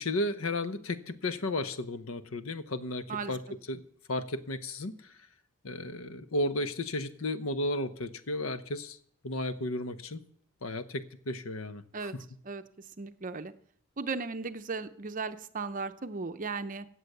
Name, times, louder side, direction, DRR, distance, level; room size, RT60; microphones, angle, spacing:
voice 1, 0.0-3.8 4.1-5.1 5.6-9.0 9.2-10.2 10.6-12.1, left 1 dB, 85° left, 11 dB, 0.9 m, -34 dB
voice 2, 13.0-13.5 14.0-16.9, right 4 dB, 40° right, 10 dB, 0.7 m, -36 dB
16.0 x 7.8 x 6.7 m, 0.65 s
head